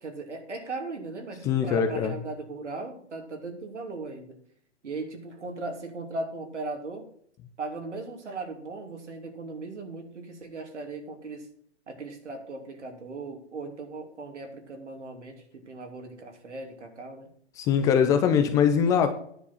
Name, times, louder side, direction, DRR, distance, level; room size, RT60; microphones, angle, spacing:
voice 1, 0.0-4.3 4.8-7.1 7.6-11.5 11.9-17.3, right 3 dB, 85° right, 3.0 m, -38 dB
voice 2, 1.4-2.1 17.6-19.1, left 7 dB, 10° left, 0.3 m, -22 dB
10.0 x 6.9 x 6.3 m
hypercardioid pair, 130°, 34 cm